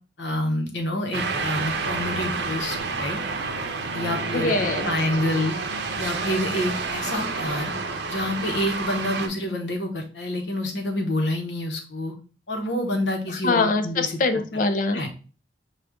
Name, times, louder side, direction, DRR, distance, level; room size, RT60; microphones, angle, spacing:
voice 1, 0.2-3.2 3.9-4.5 4.8-5.6 6.0-7.7 8.1-12.1 12.5-14.2 14.9-15.1, left 1 dB, 75° left, 2 dB, 1.0 m, -27 dB
sound 1, 1.1-9.3, right 4 dB, 65° right, 0.6 m, -29 dB
voice 2, 4.3-4.9 13.4-15.0, left 3 dB, 50° left, 9 dB, 0.5 m, -23 dB
5.0 x 2.4 x 3.5 m, 0.37 s
head